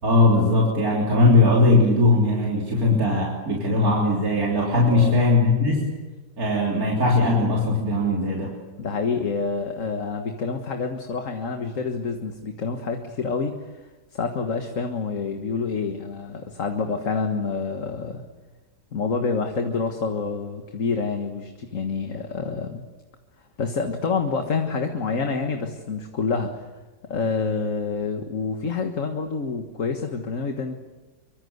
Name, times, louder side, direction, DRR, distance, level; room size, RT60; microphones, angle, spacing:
voice 1, 0.0-5.9 6.4-8.5, left 2 dB, 60° right, -3 dB, 4.0 m, -19 dB
voice 2, 4.9-5.2 8.8-13.7 14.1-18.2 18.9-22.8 23.6-26.6 27.1-30.7, left 4 dB, 50° left, 5 dB, 1.9 m, -27 dB
25.0 x 24.5 x 8.0 m, 1.2 s
omnidirectional pair, 1.8 m